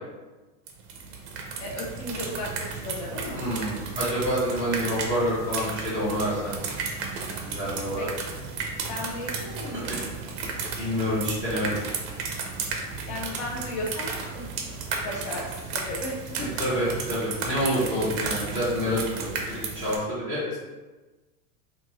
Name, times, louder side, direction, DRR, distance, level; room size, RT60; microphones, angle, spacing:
sound 1, 0.7-20.0, right 4 dB, 45° right, 0.5 m, -34 dB
voice 1, 1.6-3.5 8.0-8.1 8.9-9.9 10.2-10.3 13.1-14.1 14.3-16.6, left 1 dB, 60° left, -2 dB, 0.7 m, -35 dB
voice 2, 3.4-6.5 7.4-8.1 9.9-10.0 10.8-11.8 16.6-20.6, equal, 15° left, -11 dB, 0.7 m, -27 dB
2.5 x 2.5 x 2.9 m, 1.2 s
supercardioid pair, 150°, 46 cm